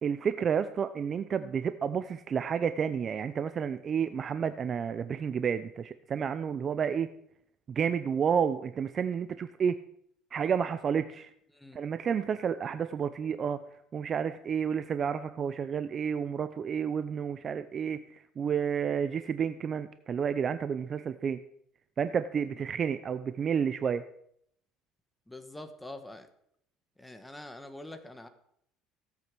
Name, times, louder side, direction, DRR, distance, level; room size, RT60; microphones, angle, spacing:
voice 1, 0.0-7.1 7.7-9.8 10.3-11.3 11.7-13.6 13.9-21.4 22.0-24.0, right 7 dB, 35° right, 11 dB, 0.6 m, -30 dB
voice 2, 25.3-26.3 27.0-28.3, left 1 dB, 5° left, 7 dB, 1.2 m, -45 dB
17.0 x 8.4 x 6.1 m, 0.71 s
cardioid pair, 135°, 0 cm